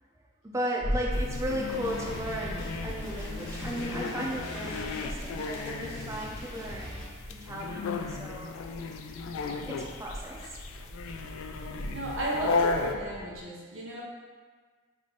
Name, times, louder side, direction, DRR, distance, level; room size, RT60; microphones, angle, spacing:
voice 1, 0.4-8.5 9.7-10.6, equal, 15° right, -2 dB, 0.4 m, -36 dB
sound 1, 0.8-13.4, equal, 45° right, 1.5 m, -40 dB
sound 2, 1.1-12.9, left 4 dB, 90° left, 0.3 m, -35 dB
sound 3, 1.6-7.1, equal, 40° left, 1.4 m, -43 dB
voice 2, 9.3-9.6 11.9-14.0, right 1 dB, 75° right, -3 dB, 0.9 m, -35 dB
3.3 x 3.1 x 4.0 m, 1.5 s
head